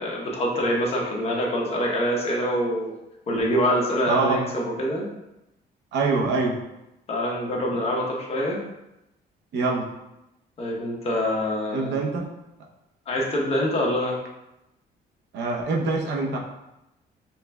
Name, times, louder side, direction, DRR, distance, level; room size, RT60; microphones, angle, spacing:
voice 1, 0.0-2.9 3.3-5.1 7.1-8.6 10.6-12.0 13.1-14.1, equal, 35° left, -2 dB, 0.9 m, -25 dB
voice 2, 4.1-4.4 5.9-6.5 9.5-9.8 11.7-12.3 15.3-16.4, right 3 dB, 90° right, 0 dB, 0.8 m, -24 dB
5.6 x 3.3 x 2.3 m, 0.92 s
cardioid pair, 155°, 18 cm